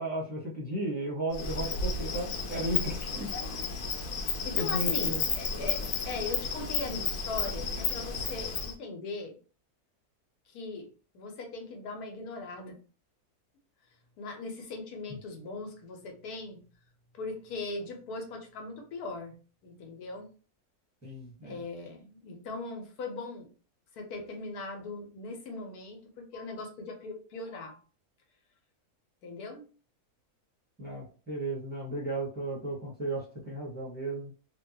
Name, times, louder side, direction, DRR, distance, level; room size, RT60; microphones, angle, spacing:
voice 1, 0.0-3.3 4.5-5.2 21.0-21.6 30.8-34.3, right 1 dB, 10° left, -5 dB, 0.8 m, -35 dB
Insect, 1.3-8.7, left 5 dB, 70° left, 1.0 m, -32 dB
voice 2, 4.4-9.4 10.5-10.9 11.1-12.8 14.2-16.6 17.1-19.3 19.6-20.3 21.4-23.5 23.9-27.8 29.2-29.6, left 3 dB, 90° left, 3 dB, 1.3 m, -39 dB
2.9 x 2.2 x 2.7 m, 0.37 s
omnidirectional pair, 1.6 m